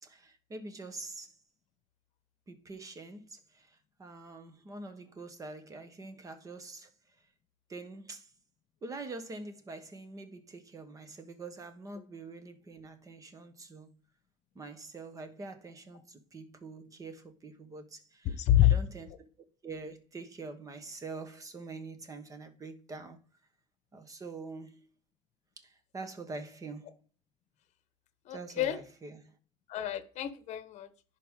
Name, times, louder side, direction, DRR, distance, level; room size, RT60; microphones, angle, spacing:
voice 1, 0.0-1.4 2.5-6.9 7.7-8.3 8.8-13.9 14.5-19.3 19.6-23.2 23.9-24.9 25.6-26.9 28.3-29.3, right 3 dB, 25° right, 1.2 m, -45 dB
voice 2, 18.4-18.7 28.3-28.8 29.7-30.9, left 13 dB, 55° left, 1.1 m, -27 dB
11.0 x 5.0 x 3.7 m
cardioid pair, 145°, 14 cm